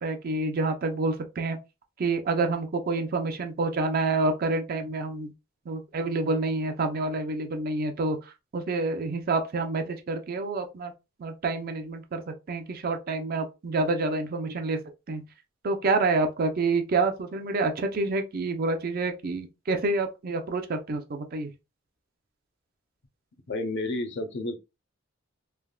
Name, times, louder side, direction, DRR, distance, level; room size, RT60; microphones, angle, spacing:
voice 1, 0.0-1.6 2.0-5.3 5.7-8.2 8.5-10.9 11.2-12.2 12.5-14.8 15.1-15.2 15.6-21.5, right 3 dB, 50° right, 0.5 m, -28 dB
voice 2, 23.5-24.6, left 2 dB, 60° left, 0.6 m, -31 dB
3.3 x 2.1 x 2.3 m
head